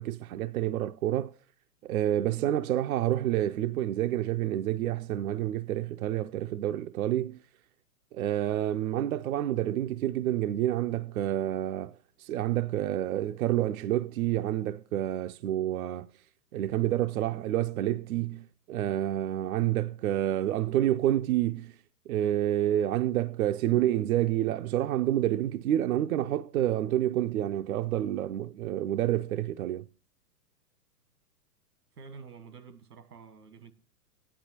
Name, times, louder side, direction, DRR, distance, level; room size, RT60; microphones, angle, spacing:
voice 1, 0.0-1.3 1.8-7.4 8.1-16.1 16.5-21.7 22.1-29.8, right 13 dB, 65° right, 0.5 m, -28 dB
voice 2, 31.9-33.7, right 5 dB, 90° right, 1.6 m, -48 dB
15.0 x 10.5 x 2.8 m
hypercardioid pair, 125°, 46 cm